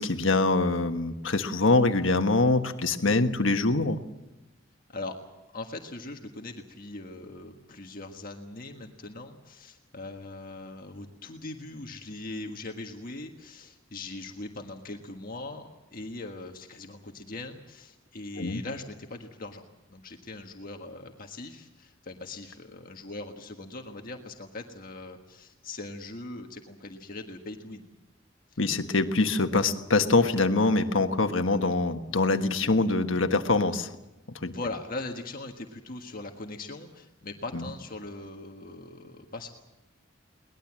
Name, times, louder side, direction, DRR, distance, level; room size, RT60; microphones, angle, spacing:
voice 1, 0.0-4.0 18.4-18.6 28.6-33.9 34.4-34.5 37.5-37.7, left 3 dB, 70° left, 7 dB, 1.4 m, -24 dB
voice 2, 5.5-27.9 34.5-39.5, left 2 dB, 45° left, 3 dB, 1.6 m, -40 dB
22.0 x 20.0 x 7.5 m, 1.0 s
head